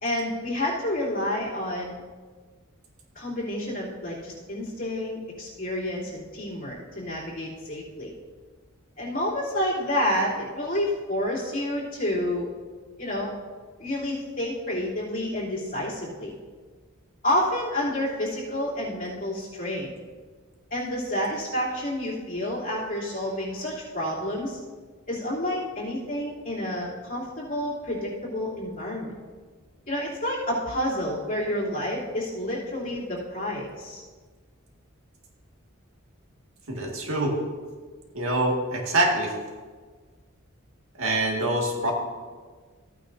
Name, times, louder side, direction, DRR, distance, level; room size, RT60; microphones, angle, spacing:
voice 1, 0.0-2.0 3.1-8.1 9.0-12.5 13.0-13.3 13.8-16.4 17.2-19.9 20.7-24.6 25.1-29.1 29.9-34.0, left 1 dB, 40° left, -6 dB, 3.2 m, -29 dB
voice 2, 36.7-37.3 38.1-39.3 41.0-41.9, right 2 dB, 80° right, 0 dB, 2.0 m, -25 dB
15.0 x 9.1 x 2.7 m, 1.5 s
head